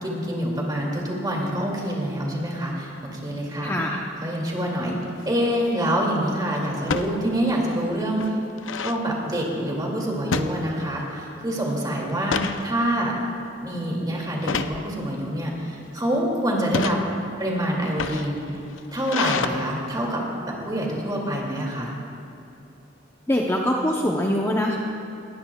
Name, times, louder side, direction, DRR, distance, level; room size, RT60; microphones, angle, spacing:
voice 1, 0.0-3.7 4.2-5.0 5.2-8.4 8.8-13.1 13.6-17.0 17.4-18.4 18.9-20.2 20.6-21.9, equal, 20° right, -2 dB, 2.4 m, -26 dB
voice 2, 3.6-4.0 23.3-24.8, left 1 dB, 15° left, -1 dB, 0.7 m, -23 dB
sound 1, 5.1-5.4 6.8-7.1 7.6-7.7 8.0-9.0 10.3-11.1 11.4-11.7 12.1-12.6 13.2-13.5 14.4-14.8 15.6-16.0 16.6-17.0 17.8-19.5, left 5 dB, 90° left, 0.6 m, -28 dB
20.0 x 15.5 x 2.3 m, 2.8 s
head